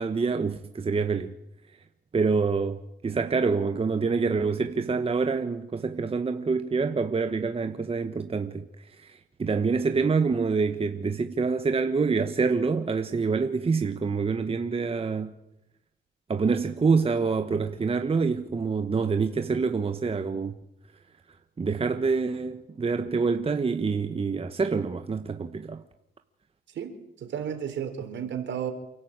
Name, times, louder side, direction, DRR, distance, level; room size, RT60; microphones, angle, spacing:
voice 1, 0.0-1.3 2.1-8.6 9.0-15.3 16.3-20.5 21.6-25.8, right 4 dB, 30° right, 1.4 m, -26 dB
voice 2, 26.7-28.7, right 8 dB, 65° right, 4.5 m, -33 dB
28.5 x 13.0 x 9.0 m
cardioid pair, 90°, 20 cm